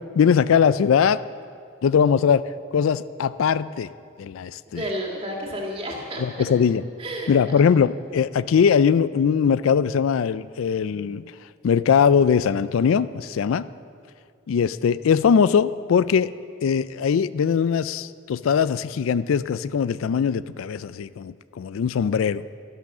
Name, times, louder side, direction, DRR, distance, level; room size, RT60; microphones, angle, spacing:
voice 1, 0.2-1.2 1.8-2.4 2.7-3.9 4.2-4.9 6.2-6.8 7.3-11.3 11.6-13.7 14.5-16.3 16.6-22.4, left 7 dB, 80° left, 16 dB, 0.3 m, -21 dB
voice 2, 4.7-6.5 7.0-7.3, equal, 30° right, -1 dB, 2.0 m, -31 dB
12.0 x 11.5 x 6.0 m, 2.3 s
head